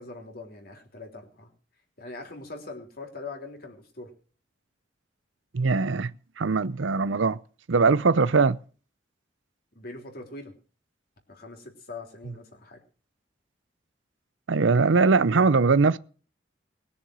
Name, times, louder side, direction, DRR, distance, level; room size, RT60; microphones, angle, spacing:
voice 1, 0.0-1.5 2.0-4.1 9.7-10.5 11.3-12.8, left 3 dB, 55° left, 3.4 m, -42 dB
voice 2, 5.5-6.1 6.4-7.4 7.7-8.6 14.5-16.0, right 4 dB, 80° right, 0.6 m, -21 dB
20.5 x 7.0 x 6.3 m
head